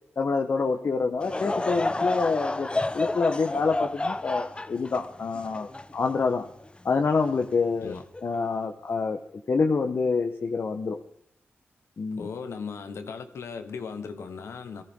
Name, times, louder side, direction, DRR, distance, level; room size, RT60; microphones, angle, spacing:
voice 1, 0.2-2.7 2.9-6.5 6.8-7.9 8.2-9.2 9.5-11.0 12.0-12.3, left 4 dB, 60° left, 4 dB, 1.0 m, -26 dB
Laughter / Crowd, 1.2-6.7 7.2-7.3 8.1-8.4, left 2 dB, 25° left, 0.8 m, -30 dB
voice 2, 12.2-14.8, left 5 dB, 85° left, 8 dB, 1.3 m, -37 dB
18.0 x 14.0 x 3.7 m, 0.70 s
cardioid pair, 65°, 4 cm